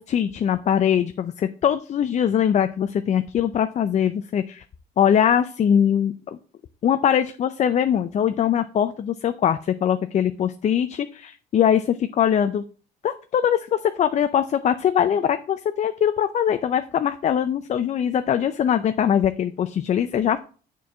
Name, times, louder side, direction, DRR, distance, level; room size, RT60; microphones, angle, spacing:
voice 1, 0.0-4.6 5.0-6.4 6.8-12.6 13.0-20.4, left 9 dB, 45° left, 10 dB, 0.5 m, -22 dB
7.0 x 4.6 x 6.1 m, 0.39 s
cardioid pair, 110°, 17 cm